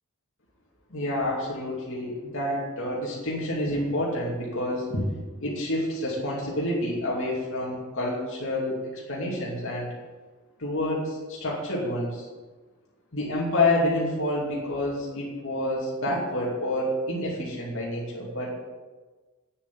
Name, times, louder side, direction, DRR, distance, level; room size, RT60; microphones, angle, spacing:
voice 1, 0.9-5.1 5.4-9.9 10.6-12.3 13.1-18.6, left 1 dB, 65° left, -4 dB, 2.6 m, -28 dB
9.7 x 7.4 x 7.5 m, 1.3 s
head